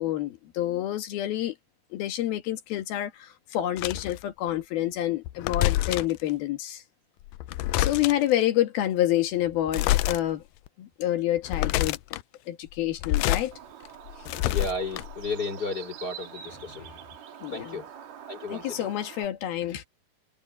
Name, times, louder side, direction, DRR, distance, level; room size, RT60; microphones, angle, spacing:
voice 1, 0.0-1.6 1.9-6.8 7.8-10.4 10.8-12.0 12.5-13.5 17.4-17.8 18.5-19.8, left 13 dB, 70° left, 3.4 m, -28 dB
sound 1, 3.8-4.2 5.2-6.2 7.3-8.3 9.7-10.2 10.7-10.8 11.4-12.2 12.9-13.5 13.9-15.3, left 15 dB, 90° left, 1.9 m, -27 dB
Bird, 13.5-19.3, right 9 dB, 70° right, 4.2 m, -45 dB
voice 2, 14.4-16.9 17.5-17.9 18.3-18.9, left 3 dB, 25° left, 4.2 m, -33 dB
omnidirectional pair, 4.7 m